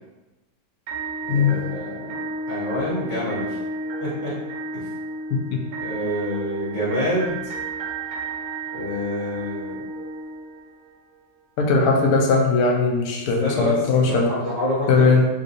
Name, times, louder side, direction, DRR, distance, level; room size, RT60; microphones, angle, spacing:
sound 1, 0.9-10.9, right 2 dB, 70° right, 1.0 m, -32 dB
voice 1, 1.2-2.2 2.5-3.6 4.0-4.4 5.8-7.5 8.7-9.8 13.4-15.2, equal, 35° left, -11 dB, 0.7 m, -27 dB
voice 2, 5.3-5.6 11.6-14.3 14.9-15.3, left 4 dB, 75° left, 0 dB, 0.9 m, -19 dB
3.7 x 2.7 x 2.5 m, 1.1 s
omnidirectional pair, 2.1 m